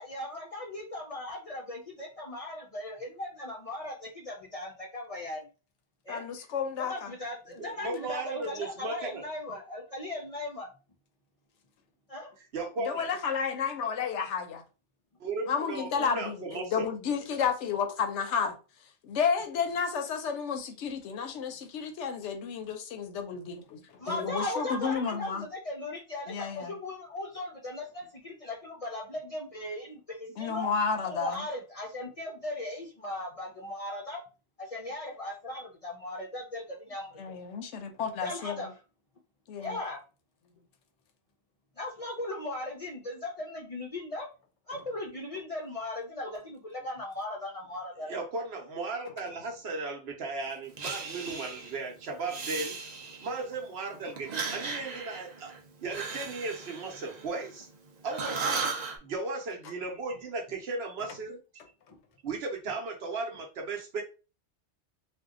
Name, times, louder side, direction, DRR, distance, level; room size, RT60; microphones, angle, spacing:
voice 1, 0.0-5.5 6.1-6.2 6.8-10.7 12.1-12.3 24.0-30.7 31.0-34.2 34.6-37.2 38.2-38.7 39.6-40.0 41.8-44.3 44.7-48.1, left 1 dB, 45° left, 0.5 m, -38 dB
voice 2, 6.1-7.1 12.9-14.6 15.5-18.5 19.0-25.5 26.3-26.8 30.4-31.5 37.2-38.7 39.5-39.8 44.7-44.8, left 6 dB, 85° left, 0.9 m, -32 dB
voice 3, 7.6-9.3 12.4-13.1 15.2-16.9 48.1-52.8 53.2-55.5 55.8-57.7 58.0-58.8 59.0-61.4 62.2-64.0, right 3 dB, 65° right, 1.0 m, -36 dB
Breathing, 50.8-51.8 52.2-53.5 54.2-57.8 58.1-59.0, right 4 dB, 45° right, 0.6 m, -36 dB
2.6 x 2.2 x 3.6 m
omnidirectional pair, 1.2 m